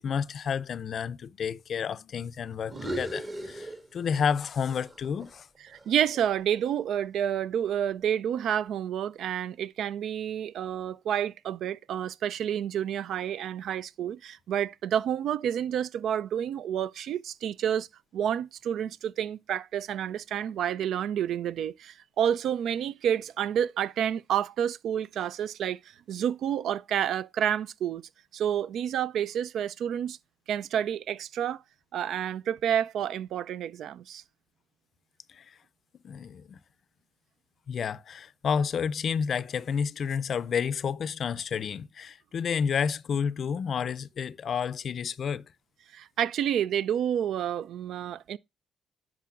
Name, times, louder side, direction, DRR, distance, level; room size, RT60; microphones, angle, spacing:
voice 1, 0.0-5.5 35.3-35.6 36.0-36.6 37.7-45.4, left 7 dB, 55° left, 0.4 m, -30 dB
sound 1, 2.6-4.4 4.7-6.9, right 2 dB, 35° right, 1.5 m, -39 dB
voice 2, 5.9-17.9 18.1-28.0 28.3-30.2 30.5-31.6 31.9-34.2 45.9-48.4, right 9 dB, 75° right, 0.3 m, -29 dB
10.0 x 6.1 x 2.4 m
cardioid pair, 90°, 0 cm